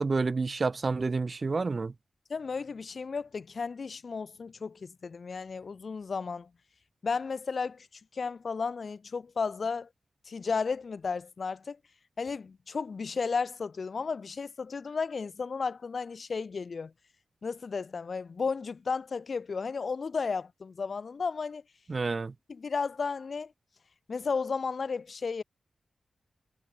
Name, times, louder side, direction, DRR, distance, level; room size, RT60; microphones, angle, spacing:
voice 1, 0.0-1.9 21.9-22.3, right 4 dB, 35° right, 0.4 m, -29 dB
voice 2, 2.3-6.5 7.0-7.9 8.1-9.9 10.3-11.8 12.2-16.9 17.4-21.6 22.5-23.5 24.1-25.4, left 5 dB, 50° left, 0.8 m, -33 dB
wide cardioid pair, 155°, 0 cm